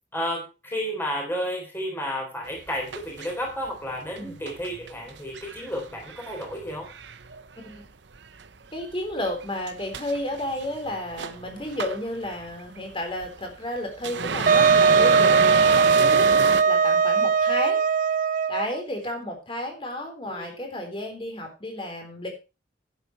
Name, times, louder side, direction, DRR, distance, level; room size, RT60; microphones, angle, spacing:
voice 1, 0.1-6.9 20.2-20.6, equal, 15° left, 0 dB, 3.7 m, -32 dB
sound 1, 2.5-7.9 8.1-16.6, right 5 dB, 80° right, 0.9 m, -31 dB
voice 2, 8.7-16.3 16.7-17.8 18.5-22.3, left 1 dB, 30° left, 3 dB, 3.9 m, -32 dB
Wind instrument woodwind instrument, 14.5-18.8, right 5 dB, 45° right, 0.5 m, -19 dB
11.5 x 9.7 x 4.5 m, 0.30 s
head